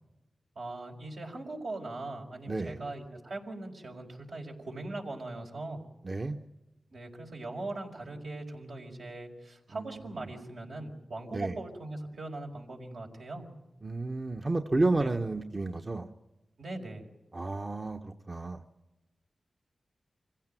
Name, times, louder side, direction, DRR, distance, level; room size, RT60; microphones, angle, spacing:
voice 1, 0.5-5.8 6.9-13.5 14.9-15.1 16.6-17.0, right 2 dB, 80° right, 0 dB, 4.8 m, -40 dB
voice 2, 2.5-2.8 6.0-6.4 9.7-10.3 11.3-11.5 13.8-16.1 17.3-18.6, right 2 dB, 40° right, 4 dB, 1.1 m, -31 dB
25.5 x 16.0 x 9.2 m, 1.0 s
cardioid pair, 45°, 0 cm